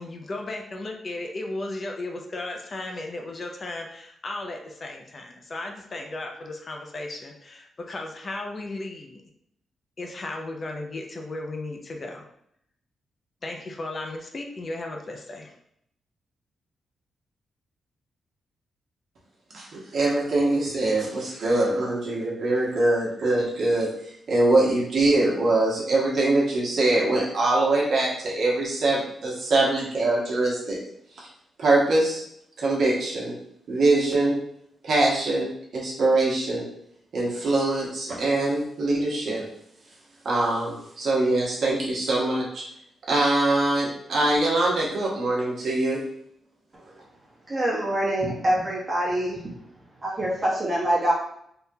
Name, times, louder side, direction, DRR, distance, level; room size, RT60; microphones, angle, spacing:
voice 1, 0.0-9.2 10.0-12.3 13.4-15.5, left 2 dB, 35° left, 2 dB, 0.4 m, -35 dB
voice 2, 19.5-23.9 24.3-30.8 31.2-31.3 31.6-32.2 32.6-33.3 33.7-34.3 34.8-36.6 37.1-39.4 40.2-42.6 43.1-46.0, right 2 dB, 60° right, -4 dB, 1.0 m, -23 dB
voice 3, 47.5-49.4 50.0-51.1, right 1 dB, 25° right, -4 dB, 1.0 m, -24 dB
3.5 x 2.2 x 2.7 m, 0.71 s
wide cardioid pair, 135°, 0 cm